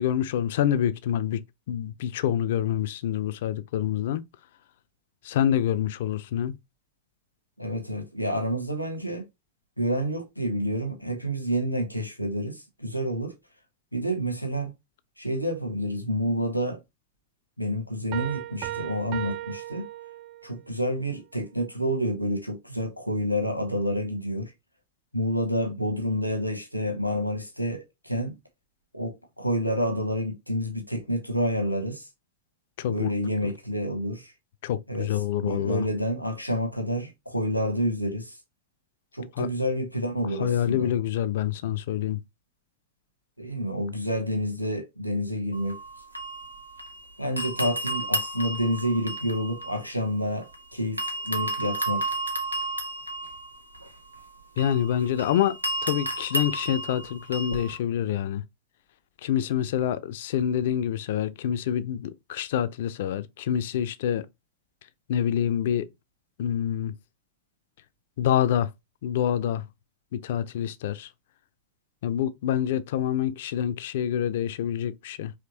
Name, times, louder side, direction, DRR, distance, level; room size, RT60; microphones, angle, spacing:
voice 1, 0.0-4.2 5.2-6.6 32.8-33.1 33.4-33.5 34.6-35.8 39.4-39.5 40.4-42.2 54.6-58.4 59.2-64.3 65.1-65.9 66.4-66.9 68.2-68.7 69.0-69.7 70.1-71.1 72.0-75.3, left 10 dB, 55° left, 0.4 m, -27 dB
voice 2, 7.6-9.2 9.8-13.3 13.9-14.7 15.2-16.8 17.6-19.9 20.4-24.5 25.1-28.3 28.9-32.1 32.9-34.3 34.9-35.1 35.4-38.4 39.1-40.9 43.4-45.8 47.2-52.2, equal, 90° left, 1.0 m, -29 dB
Piano, 18.1-20.6, right 14 dB, 45° right, 0.4 m, -36 dB
sound 1, 45.5-47.0 47.4-50.6 51.0-57.8, right 1 dB, 85° right, 0.7 m, -33 dB
4.9 x 3.2 x 2.8 m
figure-of-eight pair, 90°, 0 cm